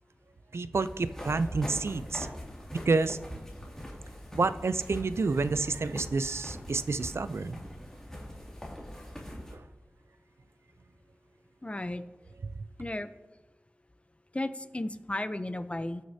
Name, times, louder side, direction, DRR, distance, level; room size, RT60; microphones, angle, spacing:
voice 1, 0.5-2.3 2.9-3.2 4.3-7.6 9.5-9.6 12.4-12.5, right 3 dB, 75° right, 13 dB, 0.4 m, -29 dB
sound 1, 0.7-9.5, equal, 10° left, 2.4 m, -42 dB
voice 2, 11.6-12.0 12.8-13.1 14.3-16.0, left 1 dB, 30° left, 11 dB, 0.6 m, -34 dB
18.0 x 6.4 x 2.8 m, 1.2 s
wide cardioid pair, 50°, 4 cm